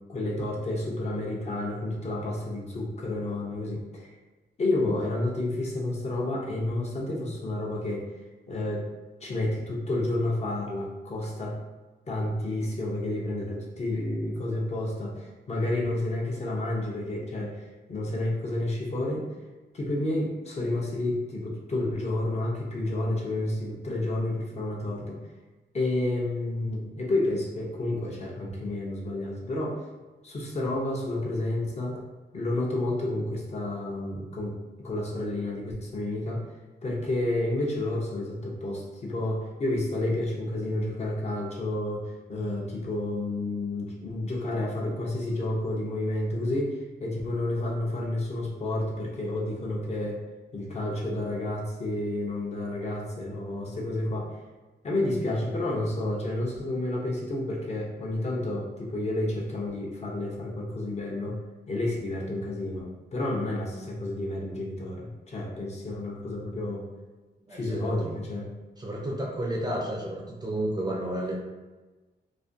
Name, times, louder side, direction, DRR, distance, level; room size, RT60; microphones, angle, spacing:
voice 1, 0.1-4.1 4.6-8.1 8.5-8.9 9.2-11.6 12.1-19.3 19.7-25.2 25.7-29.8 30.2-32.0 32.3-36.5 36.8-50.2 50.5-54.4 54.8-61.4 61.7-66.9 67.5-68.5, left 1 dB, 40° left, -3 dB, 0.5 m, -30 dB
voice 2, 67.5-68.1 68.8-71.3, right 1 dB, 25° right, -2 dB, 0.4 m, -32 dB
2.4 x 2.1 x 2.5 m, 1.2 s
wide cardioid pair, 135°, 18 cm